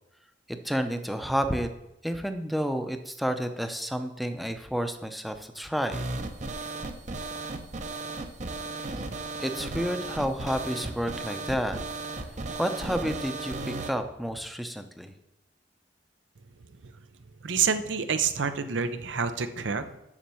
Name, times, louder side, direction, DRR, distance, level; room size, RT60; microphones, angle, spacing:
voice 1, 0.5-1.7 2.0-6.0 9.4-11.8 12.6-15.1, equal, ahead, 7 dB, 0.6 m, -30 dB
sound 1, 5.9-13.9, right 3 dB, 40° right, 0.7 m, -35 dB
voice 2, 17.4-20.0, right 6 dB, 80° right, 10 dB, 0.7 m, -28 dB
7.4 x 6.3 x 6.9 m, 0.89 s
head